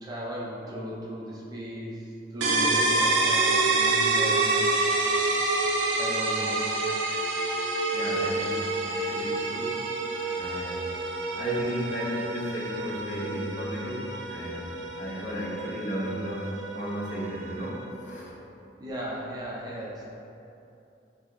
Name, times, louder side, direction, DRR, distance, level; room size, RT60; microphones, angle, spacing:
voice 1, 0.0-2.0 2.3-5.6 6.0-6.7 10.1-10.4 18.8-20.1, equal, 20° right, -5 dB, 0.5 m, -37 dB
sound 1, 2.4-18.0, right 2 dB, 85° right, 0.5 m, -28 dB
voice 2, 7.9-9.8 10.3-10.9 11.3-18.4, equal, 40° left, -6 dB, 0.8 m, -34 dB
6.5 x 2.3 x 3.1 m, 2.8 s
head